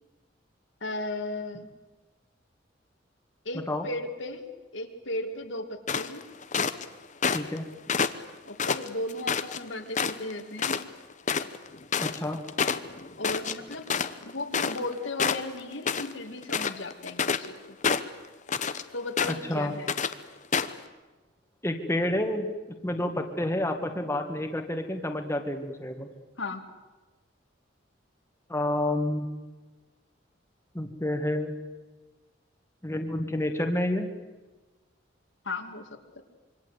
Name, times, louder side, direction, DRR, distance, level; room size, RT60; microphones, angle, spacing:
voice 1, 0.8-1.7 3.4-4.4 4.7-6.3 8.5-10.8 13.2-13.9 14.2-17.8 18.9-19.9 26.4-26.6 35.4-36.0, left 2 dB, 85° left, 4 dB, 2.7 m, -35 dB
sound 1, 5.9-6.9 7.2-7.6 7.9-9.6 9.9-10.3 10.6-10.8 11.1-14.9 15.2-16.1 16.4-17.5 17.8-18.8 19.2-19.5 19.9-20.1 20.5-20.8, left 6 dB, 40° left, 1.0 m, -28 dB
voice 2, 7.3-7.7 12.0-12.4 19.3-19.7 21.6-22.5 22.8-26.1 28.5-29.3 30.7-31.5 32.8-34.1, left 1 dB, 15° left, 4 dB, 1.9 m, -29 dB
26.0 x 24.0 x 8.3 m, 1.2 s
head